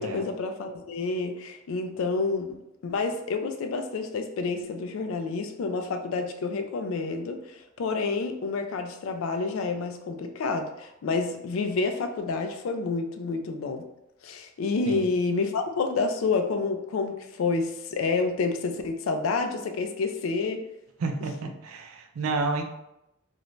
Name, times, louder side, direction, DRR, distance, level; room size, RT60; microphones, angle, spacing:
voice 1, 0.0-2.6 2.8-13.8 14.2-20.7, left 4 dB, 75° left, 7 dB, 0.3 m, -29 dB
voice 2, 21.0-22.6, right 3 dB, 85° right, 5 dB, 0.4 m, -30 dB
2.5 x 2.1 x 3.1 m, 0.87 s
head